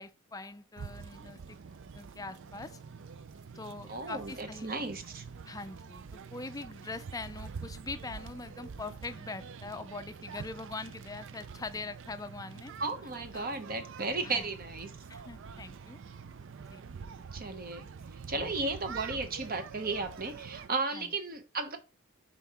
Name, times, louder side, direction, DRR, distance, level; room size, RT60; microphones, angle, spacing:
voice 1, 0.0-1.6 1.9-2.8 3.5-4.7 5.5-12.7 13.3-13.5 14.2-14.5 15.1-16.0 16.7-16.8 18.3-18.5 20.9-21.1, left 3 dB, 15° left, 0.5 m, -43 dB
sound 1, 0.8-20.7, right 5 dB, 60° right, 0.5 m, -46 dB
voice 2, 3.9-5.2 12.8-14.9 17.3-17.9 18.3-21.8, right 3 dB, 45° right, 1.0 m, -34 dB
5.7 x 4.5 x 4.3 m
head